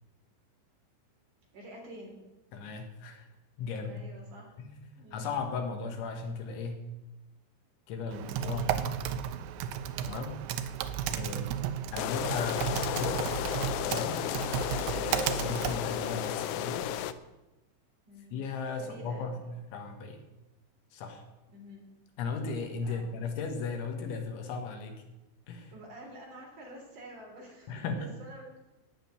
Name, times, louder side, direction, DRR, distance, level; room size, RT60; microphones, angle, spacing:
voice 1, 1.5-2.2 3.9-4.5 5.0-5.3 8.4-8.8 18.1-18.4 18.7-19.3 21.5-21.8 22.8-23.1 25.7-28.5, right 1 dB, 45° right, -1 dB, 4.6 m, -48 dB
voice 2, 2.5-3.3 3.6-4.0 4.6-6.8 7.9-8.9 10.0-10.4 11.1-11.4 11.9-13.2 13.8-14.2 14.9-16.9 18.3-19.4 19.7-20.2 20.9-21.2 22.2-25.0 25.5-25.7 27.7-28.1, left 4 dB, 75° left, 4 dB, 3.8 m, -36 dB
Typing, 8.1-16.3, right 9 dB, 80° right, 2.7 m, -34 dB
sound 1, 12.0-17.1, left 12 dB, 90° left, 2.4 m, -33 dB
16.5 x 6.6 x 9.7 m, 1.0 s
omnidirectional pair, 5.6 m